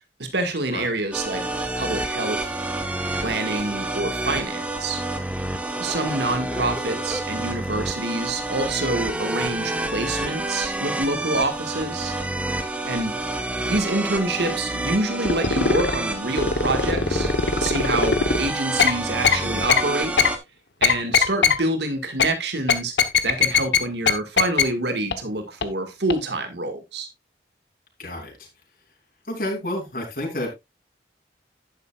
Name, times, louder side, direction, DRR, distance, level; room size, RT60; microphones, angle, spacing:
voice 1, 0.2-1.4 1.8-2.5 3.2-5.0 5.8-12.1 12.8-13.1 13.6-17.3 17.6-20.1 20.8-22.9 23.2-27.1, right 2 dB, 75° right, 1.8 m, -27 dB
sound 1, 1.1-20.4, right 2 dB, 10° right, 1.1 m, -28 dB
sound 2, 15.3-16.0 16.4-18.4 18.8-18.9 19.2-19.4 19.7-19.8 20.2-20.3 20.8-21.6 22.2-22.3 22.7-23.8 24.1-24.2 24.4-24.6 25.1-25.2 25.6-25.7 26.1-26.2, left 6 dB, 80° left, 1.1 m, -19 dB
voice 2, 28.0-28.5 29.3-30.5, left 1 dB, 50° left, 3.4 m, -30 dB
11.0 x 9.4 x 2.4 m
head